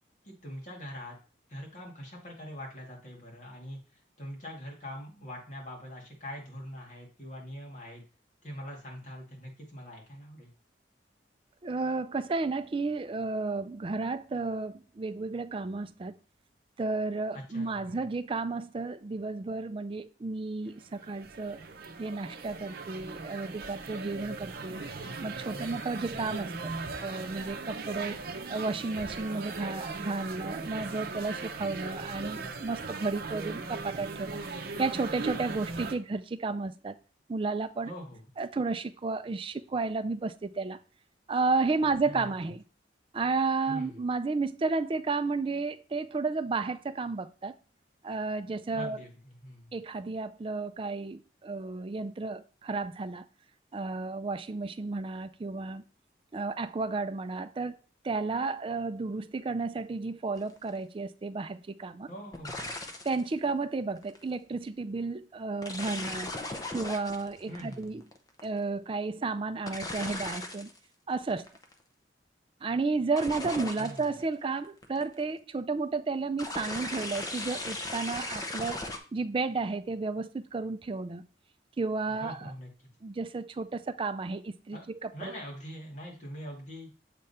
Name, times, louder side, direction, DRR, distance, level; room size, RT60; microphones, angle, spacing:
voice 1, 0.2-1.2 1.5-8.0 8.4-10.5 17.3-18.0 25.5-26.3 37.8-38.3 42.0-42.3 43.7-44.0 48.7-49.8 62.1-62.7 67.5-68.0 73.8-74.1 82.2-82.9 84.7-84.9 85.1-86.9, equal, 40° left, 2.2 m, -43 dB
voice 2, 11.6-16.2 16.8-21.6 22.0-24.8 25.2-28.2 28.5-34.4 34.8-37.0 37.3-37.9 38.4-40.8 41.3-42.6 43.1-47.5 48.0-49.0 49.7-53.2 53.7-55.8 56.3-57.8 58.0-62.1 63.0-66.3 66.7-68.0 68.4-70.7 71.1-71.5 72.6-78.8 79.1-81.2 81.8-82.5 83.0-85.4, right 3 dB, 30° right, 0.4 m, -32 dB
sound 1, 20.7-35.9, right 3 dB, 55° right, 0.7 m, -39 dB
sound 2, 60.4-60.6 62.3-63.2 63.9-64.2 65.6-68.6 69.7-70.8 71.1-71.7 73.2-74.2 74.6-75.2 76.4-79.0, left 2 dB, 20° left, 0.7 m, -37 dB
7.6 x 3.6 x 4.2 m
head